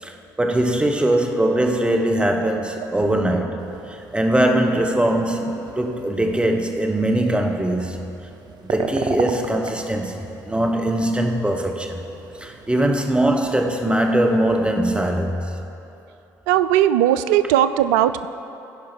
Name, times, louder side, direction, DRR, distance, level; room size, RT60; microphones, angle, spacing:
voice 1, 0.0-8.0 8.7-12.0 12.4-15.5, right 1 dB, 10° right, 3 dB, 1.2 m, -21 dB
sound 1, 3.6-15.2, right 4 dB, 50° right, 0.8 m, -36 dB
voice 2, 16.5-18.3, right 11 dB, 75° right, 13 dB, 0.4 m, -18 dB
15.0 x 5.5 x 5.3 m, 2.9 s
hypercardioid pair, 55°, 9 cm